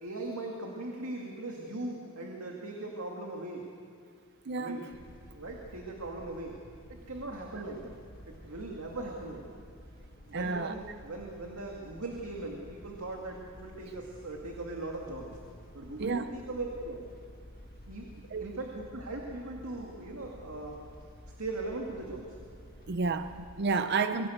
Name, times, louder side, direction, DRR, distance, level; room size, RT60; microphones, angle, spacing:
voice 1, 0.0-3.6 4.6-4.9 5.3-6.6 6.9-8.0 8.2-9.5 10.3-15.4 15.7-17.1 17.9-18.1 18.4-20.8 21.4-22.4, right 2 dB, 90° right, 0 dB, 2.3 m, -39 dB
voice 2, 4.5-4.8 10.3-10.7 16.0-16.2 18.3-18.5 22.9-24.3, right 4 dB, 50° right, 10 dB, 0.6 m, -30 dB
sound 1, 4.9-23.6, equal, 45° left, 1.6 m, -51 dB
24.0 x 17.0 x 7.9 m, 2.2 s
head